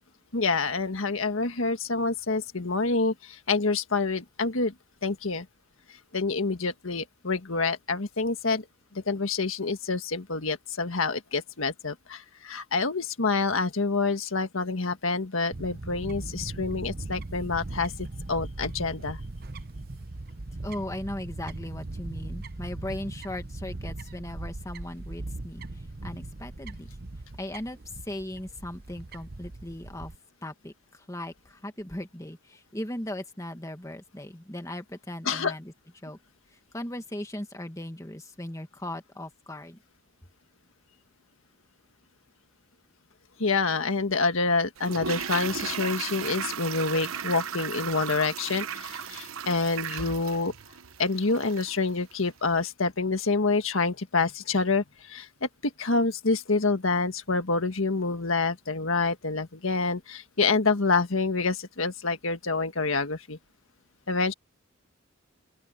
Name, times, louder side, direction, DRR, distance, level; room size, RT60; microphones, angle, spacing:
voice 1, 0.3-4.7 5.0-5.4 6.1-8.6 8.9-19.2 35.2-35.5 43.4-50.5 51.0-63.4 64.1-64.3, left 3 dB, 80° left, 1.6 m, -27 dB
Fowl / Bird, 15.5-30.1, right 2 dB, 45° right, 0.9 m, -39 dB
voice 2, 20.6-25.6 26.0-26.9 27.4-27.8 28.0-30.1 30.4-35.7 36.0-36.2 36.7-39.8, left 1 dB, 15° left, 1.8 m, -38 dB
Toilet flush, 44.8-51.8 52.1-52.2, right 7 dB, 90° right, 1.0 m, -35 dB
open air
head